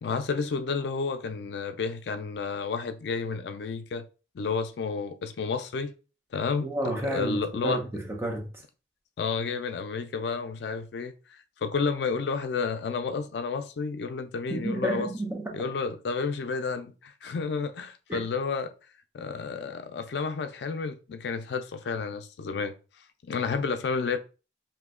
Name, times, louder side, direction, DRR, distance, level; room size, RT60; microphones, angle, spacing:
voice 1, 0.0-4.1 4.3-5.9 6.3-7.8 9.2-15.1 15.5-18.7 19.1-22.7 23.2-24.2, left 5 dB, 75° left, 0.4 m, -31 dB
voice 2, 6.6-8.5 14.5-15.6 18.1-18.2, right 1 dB, 15° right, 0.6 m, -31 dB
2.7 x 2.2 x 3.6 m
head